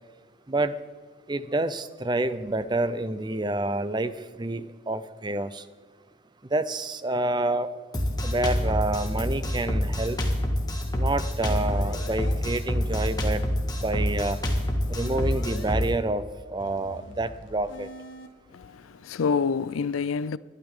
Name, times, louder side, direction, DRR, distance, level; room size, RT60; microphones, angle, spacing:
voice 1, 1.3-4.1 4.4-5.6 6.5-7.7 8.2-10.2 10.9-13.4 13.8-14.4 14.9-17.9, right 2 dB, 20° right, 0.6 m, -28 dB
Drum kit, 7.9-15.9, equal, 20° left, 1.8 m, -26 dB
sound 1, 11.5-12.3 13.2-15.7 16.6-18.3, left 1 dB, 65° left, 1.2 m, -44 dB
voice 2, 18.5-20.4, left 5 dB, 85° left, 0.5 m, -27 dB
21.0 x 12.0 x 3.7 m
head